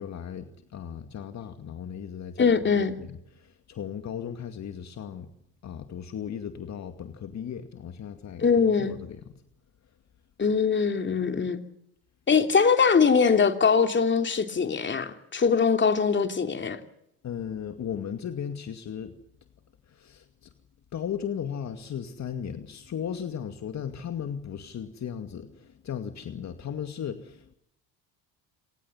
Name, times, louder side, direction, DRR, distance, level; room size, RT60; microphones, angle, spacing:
voice 1, 0.0-5.3 5.6-9.4 17.2-19.2 19.9-20.5 20.9-27.5, left 8 dB, 45° left, 7 dB, 2.3 m, -36 dB
voice 2, 2.4-2.9 8.4-8.9 10.4-11.6 12.3-16.8, left 5 dB, 30° left, 7 dB, 3.0 m, -22 dB
26.5 x 19.5 x 7.3 m, 0.76 s
supercardioid pair, 85°, 37 cm